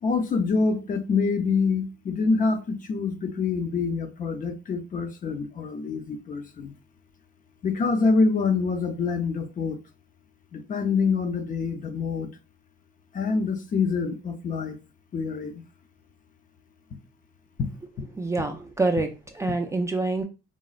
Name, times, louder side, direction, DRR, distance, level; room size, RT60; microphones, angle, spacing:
voice 1, 0.0-6.7 7.6-9.8 10.5-12.3 13.1-14.8 15.1-15.6 17.6-17.7, left 4 dB, 40° left, 0.5 m, -26 dB
voice 2, 18.1-20.2, right 2 dB, 15° right, 0.3 m, -26 dB
4.0 x 2.1 x 2.4 m
cardioid pair, 120°, 21 cm